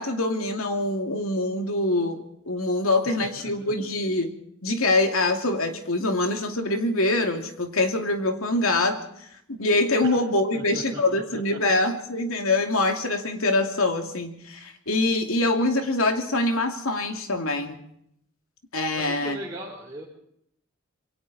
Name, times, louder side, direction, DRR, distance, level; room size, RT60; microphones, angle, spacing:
voice 1, 0.0-4.3 4.6-9.0 9.5-17.8 18.7-19.4, left 2 dB, 90° left, 4 dB, 2.7 m, -24 dB
voice 2, 3.4-3.7 10.0-10.2 10.5-11.2 15.4-15.5 18.9-20.1, right 1 dB, 20° right, -4 dB, 4.1 m, -39 dB
27.0 x 23.0 x 4.3 m, 0.73 s
head